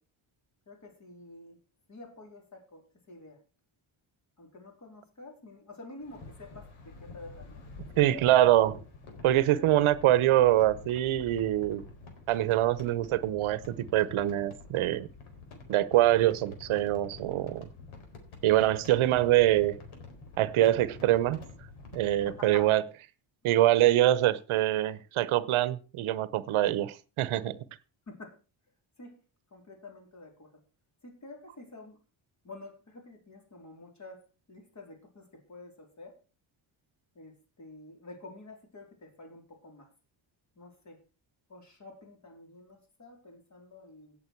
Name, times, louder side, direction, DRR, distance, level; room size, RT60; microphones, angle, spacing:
voice 1, 0.7-1.6 1.9-3.4 4.4-7.6 7.9-8.4 9.6-9.7 22.2-22.7 28.1-28.4 29.0-29.1 29.5-30.5 31.0-32.0 32.4-34.2 34.5-36.2 37.1-39.9 40.6-41.0 41.5-44.2, left 2 dB, 35° left, 3.9 m, -49 dB
sound 1, 6.0-22.7, left 3 dB, 85° left, 4.2 m, -48 dB
voice 2, 8.0-8.8 9.2-11.8 12.3-15.1 15.7-17.7 18.4-19.8 20.4-21.4 21.9-22.8 23.4-27.6, right 14 dB, 90° right, 1.0 m, -24 dB
17.0 x 7.6 x 4.6 m
cardioid pair, 155°, 48 cm